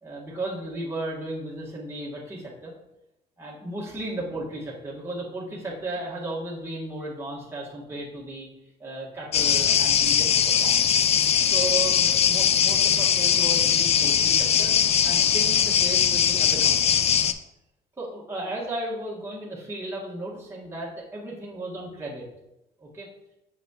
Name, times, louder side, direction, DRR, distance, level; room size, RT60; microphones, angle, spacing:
voice 1, 0.0-2.7 3.4-8.5 8.8-11.0 11.5-14.7 15.0-17.1 18.0-22.3 22.8-23.1, right 1 dB, 15° right, -5 dB, 1.5 m, -35 dB
sound 1, 9.3-17.3, left 8 dB, 40° left, 0.4 m, -21 dB
6.0 x 5.9 x 2.9 m, 0.91 s
cardioid pair, 110°, 17 cm